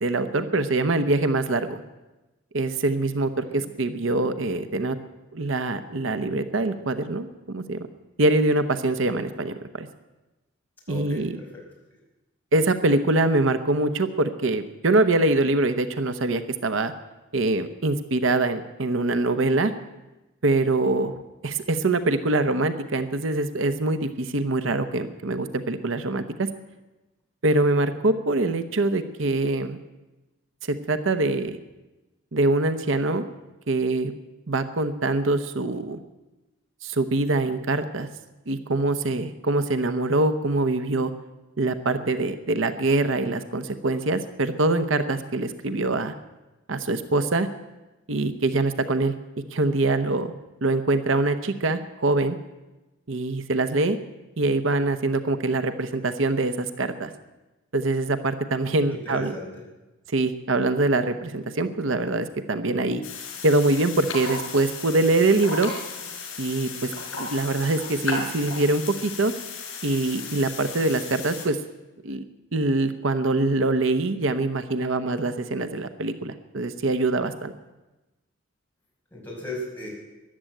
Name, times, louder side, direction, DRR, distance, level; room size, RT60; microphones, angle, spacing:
voice 1, 0.0-1.8 2.5-5.0 5.3-7.8 8.2-9.9 10.9-11.4 12.5-16.9 17.3-19.7 20.4-21.2 21.4-26.5 27.4-29.8 30.6-31.6 32.3-33.3 33.7-34.1 34.5-36.0 36.8-38.1 38.5-41.1 41.6-46.1 46.7-47.5 48.1-49.1 49.5-50.3 50.6-52.4 53.1-54.0 54.4-57.1 57.7-59.4 60.1-63.0 63.4-65.7 66.4-66.9 67.2-69.3 69.8-71.6 72.0-72.2 72.5-77.5, right 2 dB, 75° right, 10 dB, 0.9 m, -24 dB
voice 2, 10.9-11.6 58.9-59.6 79.1-79.9, left 1 dB, 10° left, -5 dB, 5.5 m, -36 dB
sound 1, 63.0-71.5, left 4 dB, 85° left, 5.1 m, -35 dB
14.0 x 11.5 x 9.1 m, 1.1 s
head